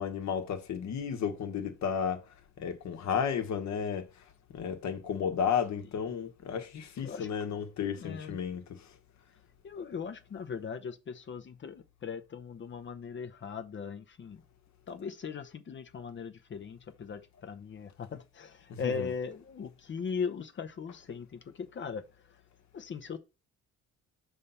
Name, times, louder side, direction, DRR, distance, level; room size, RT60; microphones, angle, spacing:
voice 1, 0.0-2.2 2.6-4.1 4.5-8.9 18.7-19.1, left 7 dB, 65° left, 1.1 m, -33 dB
voice 2, 8.0-8.4 9.6-14.4 14.9-22.4 22.7-23.2, left 6 dB, 40° left, 0.7 m, -39 dB
5.5 x 3.4 x 5.5 m
cardioid pair, 90°, 30 cm